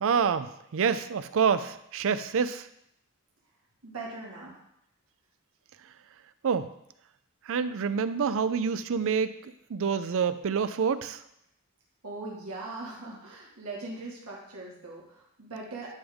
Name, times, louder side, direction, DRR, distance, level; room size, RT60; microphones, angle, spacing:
voice 1, 0.0-2.7 6.4-6.7 7.5-11.2, right 6 dB, 65° right, 13 dB, 0.5 m, -27 dB
voice 2, 3.8-4.6 12.0-15.9, right 2 dB, 80° right, -3 dB, 2.1 m, -40 dB
10.5 x 3.5 x 5.4 m, 0.77 s
head